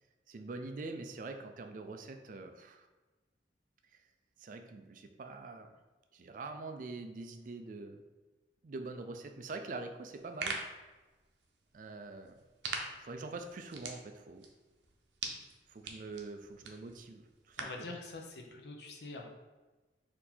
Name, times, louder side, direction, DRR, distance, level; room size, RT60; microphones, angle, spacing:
voice 1, 0.3-2.9 3.9-4.0 4.4-5.8 6.1-8.0 8.6-10.6 11.7-12.4 13.0-14.5 15.7-17.9, right 3 dB, 45° right, 6 dB, 0.4 m, -44 dB
sound 1, 10.1-17.9, right 4 dB, 80° right, 0.6 m, -44 dB
voice 2, 17.6-19.3, left 2 dB, 65° left, 2 dB, 0.7 m, -45 dB
4.4 x 2.7 x 4.1 m, 1.2 s
head